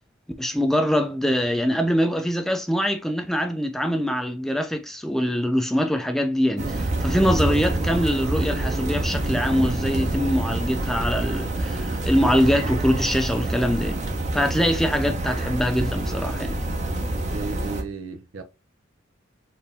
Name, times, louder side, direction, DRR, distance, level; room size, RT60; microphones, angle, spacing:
voice 1, 0.4-14.0 14.3-16.6, equal, ahead, 0.4 m, -23 dB
sound 1, 6.6-17.8, right 1 dB, 35° right, 0.8 m, -27 dB
voice 2, 17.3-18.4, right 4 dB, 85° right, 0.8 m, -34 dB
4.2 x 2.7 x 3.5 m
head